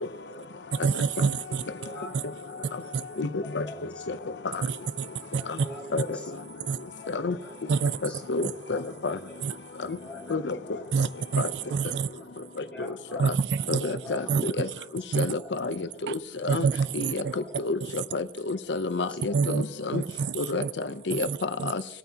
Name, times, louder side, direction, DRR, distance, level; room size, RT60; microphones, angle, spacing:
voice 1, 0.8-1.6 2.1-2.2 2.9-3.0 4.6-4.8 5.3-5.4 6.7-6.8 7.7-8.0 8.4-8.5 9.4-9.5 10.9-12.1 13.2-13.9 14.3-14.7 15.1-15.3 16.1-16.2 16.5-17.3 19.3-19.6 19.9-20.7 21.1-21.7, right 5 dB, 80° right, 0.3 m, -27 dB
voice 2, 1.3-3.2 3.6-4.2 4.9-5.1 5.3-6.7 7.3-7.7 8.0-8.9 9.2-9.3 9.7-10.9 11.4-14.3 15.3-15.8 17.3-17.6 19.1-19.2 19.7-19.9, left 1 dB, 5° left, 2.6 m, -46 dB
voice 3, 3.2-3.6 4.1-4.2 5.9-6.2 7.1-7.4 8.0-9.2 10.3-10.6 11.4-11.5 13.2-13.3 13.7-14.2 14.6-14.7 15.1-16.2 16.4-16.7 16.9-17.2 17.6-20.0 20.4-20.6 21.1-21.8, left 3 dB, 90° left, 0.7 m, -29 dB
20.5 x 9.2 x 2.9 m
head